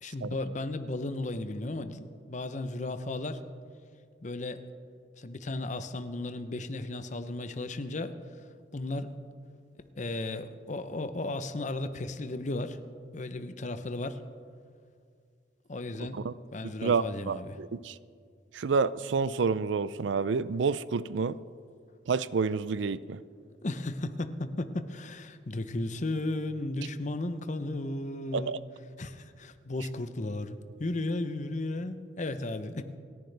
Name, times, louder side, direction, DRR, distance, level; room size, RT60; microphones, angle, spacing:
voice 1, 0.0-3.4 4.2-4.6 5.2-8.2 8.7-9.1 10.0-12.8 13.1-14.2 15.7-16.2 16.5-17.5 23.6-28.6 29.0-32.8, left 2 dB, 40° left, 0.7 m, -35 dB
voice 2, 16.8-18.0 18.5-21.4 22.1-23.2 28.3-28.6, right 5 dB, 80° right, 0.4 m, -29 dB
28.0 x 10.5 x 3.4 m
head